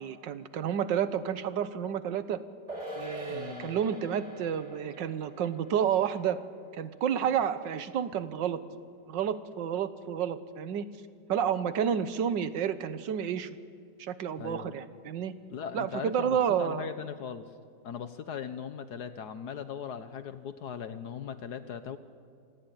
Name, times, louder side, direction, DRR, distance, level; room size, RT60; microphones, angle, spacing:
voice 1, 0.0-2.4 3.0-6.4 6.7-8.6 9.1-10.9 11.3-13.5 14.0-15.3 15.7-16.9, right 8 dB, 80° right, 12 dB, 1.7 m, -30 dB
sound 1, 2.7-9.3 9.6-9.7, right 1 dB, 20° right, 3.3 m, -45 dB
voice 2, 3.3-3.8 14.4-14.8 15.5-17.5 17.8-22.0, left 7 dB, 65° left, 10 dB, 1.4 m, -39 dB
27.5 x 18.5 x 9.1 m, 2.1 s
omnidirectional pair, 1.9 m